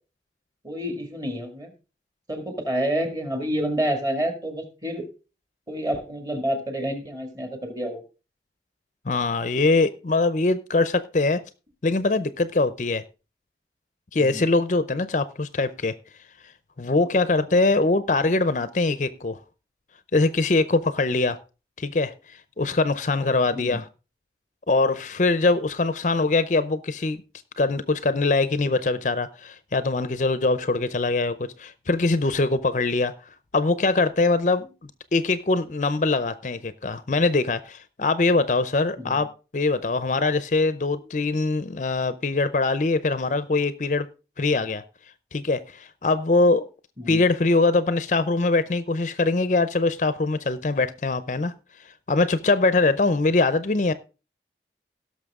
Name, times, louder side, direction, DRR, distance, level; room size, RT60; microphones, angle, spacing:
voice 1, 0.6-1.7 2.3-5.1 5.7-8.0 14.2-14.4 23.5-23.8 39.0-39.1 47.0-47.2, equal, 20° right, 2.1 m, -28 dB
voice 2, 9.1-11.4 11.8-13.0 14.1-15.9 16.8-19.4 20.1-21.4 21.8-23.8 24.7-27.2 27.6-33.1 33.5-34.7 35.1-39.3 39.5-44.1 44.4-44.8 45.3-46.7 47.1-51.5 52.1-53.9, left 3 dB, 45° left, 0.6 m, -22 dB
17.5 x 6.4 x 3.6 m
head